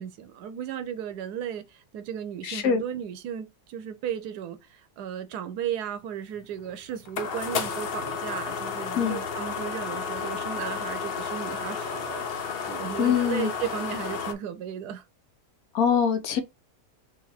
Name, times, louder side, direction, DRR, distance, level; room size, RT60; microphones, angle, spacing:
voice 1, 0.0-15.0, right 9 dB, 90° right, 1.2 m, -35 dB
voice 2, 2.4-2.8 9.0-9.2 13.0-13.5 15.7-16.4, left 7 dB, 70° left, 1.2 m, -24 dB
sound 1, 6.4-14.3, left 6 dB, 55° left, 0.7 m, -32 dB
3.9 x 2.8 x 4.1 m
omnidirectional pair, 1.7 m